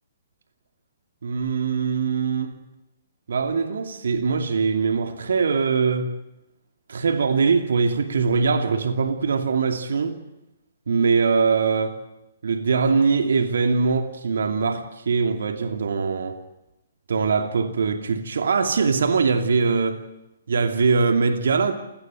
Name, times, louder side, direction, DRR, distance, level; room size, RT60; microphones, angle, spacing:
voice 1, 1.2-2.6 3.3-6.1 6.9-10.2 10.9-12.0 12.4-16.4 17.1-20.0 20.5-21.7, right 5 dB, 70° right, 2.7 m, -22 dB
28.5 x 18.0 x 9.4 m
figure-of-eight pair, 125°, 0 cm